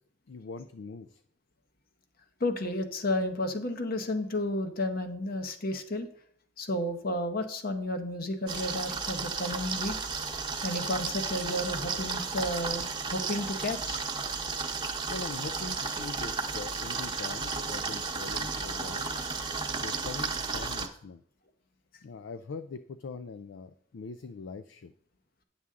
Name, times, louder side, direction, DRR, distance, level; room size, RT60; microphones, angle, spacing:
voice 1, 0.3-1.2 14.8-19.1 19.7-21.2 22.0-24.9, left 4 dB, 75° left, 10 dB, 0.4 m, -42 dB
voice 2, 2.4-6.1 6.6-9.9 10.6-14.0, left 1 dB, 50° left, 6 dB, 1.0 m, -32 dB
sound 1, 8.5-20.9, right 4 dB, 25° right, 1.0 m, -33 dB
9.6 x 7.1 x 3.7 m, 0.64 s
head